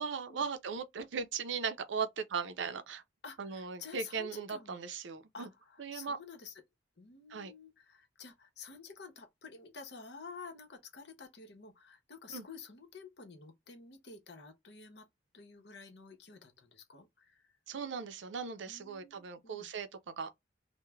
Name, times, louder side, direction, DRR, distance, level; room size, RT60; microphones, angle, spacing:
voice 1, 0.0-3.0 3.4-5.5 5.8-6.2 7.3-7.5 12.3-12.4 17.7-20.3, right 5 dB, 85° right, 0.5 m, -38 dB
voice 2, 3.2-4.8 5.3-6.6 7.0-15.1 15.3-17.5 18.7-19.7, left 5 dB, 65° left, 0.8 m, -50 dB
3.0 x 2.1 x 2.2 m
head